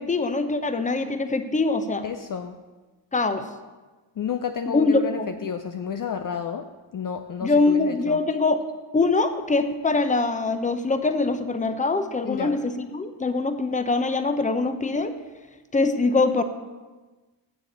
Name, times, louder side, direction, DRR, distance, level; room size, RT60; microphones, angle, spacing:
voice 1, 0.0-2.0 3.1-3.4 4.7-5.3 7.4-8.6 8.9-15.1 15.7-16.4, left 3 dB, 15° left, 9 dB, 0.8 m, -23 dB
voice 2, 2.0-2.6 4.2-8.2 12.2-12.6, left 7 dB, 40° left, 7 dB, 0.6 m, -31 dB
7.0 x 7.0 x 6.7 m, 1.3 s
supercardioid pair, 55°, 49 cm